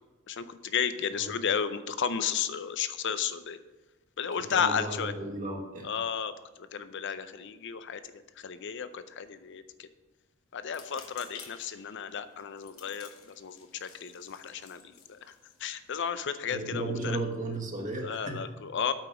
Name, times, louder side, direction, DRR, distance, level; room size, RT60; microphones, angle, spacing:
voice 1, 0.3-3.6 4.2-5.1 5.8-6.3 6.7-8.0 8.4-9.9 10.5-14.8 15.1-15.2 15.6-17.2 18.0-18.9, left 7 dB, 60° left, 12 dB, 0.5 m, -33 dB
voice 2, 4.5-5.9 16.5-18.5, right 2 dB, 40° right, 1 dB, 1.4 m, -35 dB
sound 1, 10.6-16.0, left 7 dB, 85° left, 1.0 m, -52 dB
8.8 x 5.0 x 5.8 m, 1.2 s
head